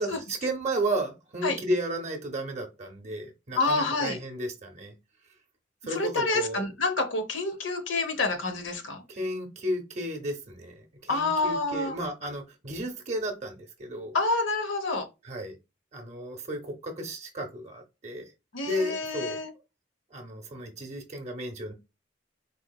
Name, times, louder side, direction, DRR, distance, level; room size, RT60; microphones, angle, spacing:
voice 1, 0.0-4.9 5.8-6.6 9.1-14.2 15.2-15.6 15.9-18.3 18.6-19.4 20.1-21.7, right 1 dB, 35° right, 0.7 m, -33 dB
voice 2, 3.6-4.2 5.9-9.0 11.1-12.0 14.1-15.0 18.5-19.5, left 3 dB, 85° left, 0.8 m, -28 dB
4.3 x 2.9 x 2.2 m
head